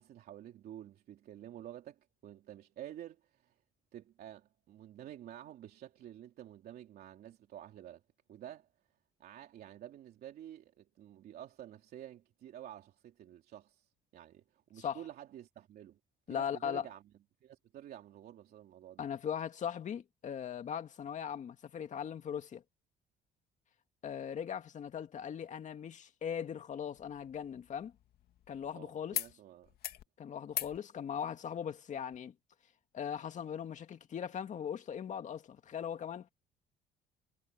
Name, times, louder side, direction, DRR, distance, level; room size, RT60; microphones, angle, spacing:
voice 1, 0.0-3.6 3.9-8.0 8.3-8.7 9.2-16.0 16.3-17.0 17.4-19.0 28.7-29.7, right 11 dB, 65° right, 3.0 m, -50 dB
voice 2, 16.3-16.8 19.0-22.6 24.0-27.9 28.5-29.2 30.2-32.3 32.9-36.3, left 8 dB, 45° left, 2.1 m, -39 dB
sound 1, 26.9-28.7 29.1-29.3 29.6-30.0 30.5-30.8 32.1-32.2, left 12 dB, 65° left, 2.2 m, -41 dB
cardioid pair, 110°, 17 cm